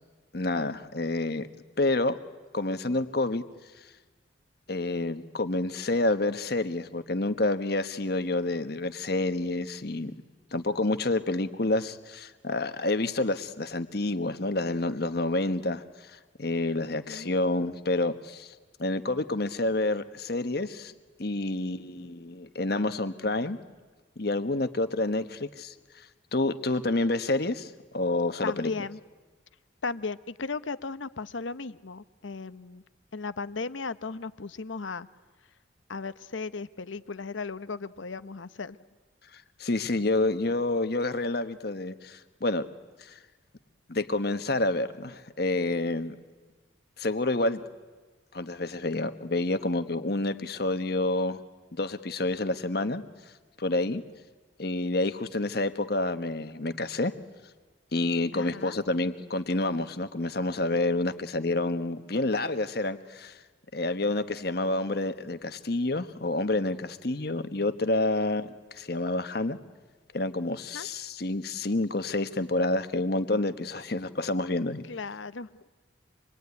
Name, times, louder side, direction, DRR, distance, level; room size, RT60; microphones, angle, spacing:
voice 1, 0.3-1.5 1.8-2.2 2.5-3.4 4.7-10.1 10.5-15.8 16.1-20.9 21.2-23.6 24.2-25.7 26.3-28.7 39.3-42.7 43.0-43.2 43.9-46.2 47.0-47.6 48.3-51.4 51.7-53.0 53.6-54.0 54.6-57.1 57.9-63.4 63.7-69.6 70.1-74.8, left 2 dB, 55° left, 10 dB, 1.2 m, -28 dB
voice 2, 16.8-17.3 28.4-29.0 29.8-32.8 33.1-35.1 35.9-38.8 58.3-58.8 70.7-70.9 74.9-75.6, left 4 dB, 80° left, 14 dB, 0.9 m, -36 dB
26.5 x 21.5 x 9.7 m, 1.3 s
head